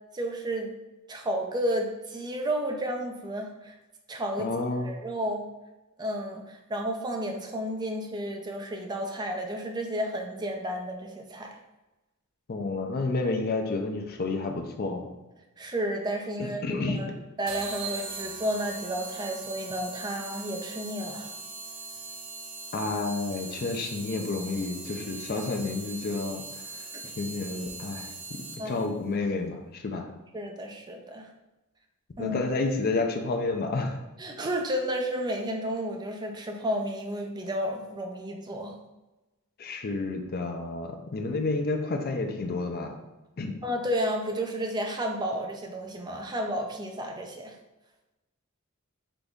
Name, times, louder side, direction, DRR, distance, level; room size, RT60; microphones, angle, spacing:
voice 1, 0.1-0.7 1.1-3.7 4.1-4.5 4.8-5.5 6.0-11.6 15.6-17.1 17.4-21.3 25.3-25.5 26.9-27.0 28.6-28.8 30.3-31.3 32.2-32.4 34.2-38.7 43.6-47.5, equal, 20° right, 2 dB, 0.5 m, -32 dB
voice 2, 4.4-4.9 12.5-15.1 16.4-17.2 22.7-26.4 27.2-28.1 28.7-30.1 32.2-34.0 39.6-43.0 43.4-43.5, left 3 dB, 45° left, 3 dB, 0.5 m, -30 dB
sound 1, 17.5-28.9, right 3 dB, 65° right, 0.7 m, -40 dB
3.9 x 3.4 x 3.5 m, 1.1 s
head